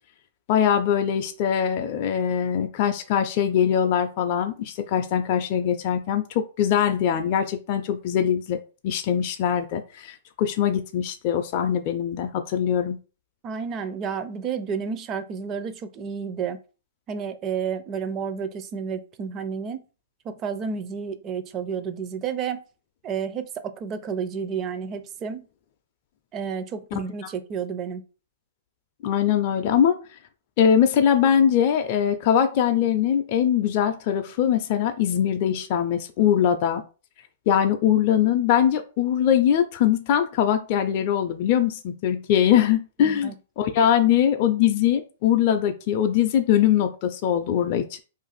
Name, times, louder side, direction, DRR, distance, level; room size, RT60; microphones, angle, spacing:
voice 1, 0.5-13.0 26.9-27.0 29.0-30.0 30.6-36.8 37.5-48.0, left 9 dB, 50° left, 6 dB, 0.4 m, -22 dB
voice 2, 13.4-16.6 17.1-19.8 20.2-22.6 23.0-25.5 26.3-28.0 43.0-43.4, right 6 dB, 30° right, 11 dB, 0.5 m, -31 dB
2.5 x 2.5 x 4.0 m, 0.34 s
hypercardioid pair, 120°, 0 cm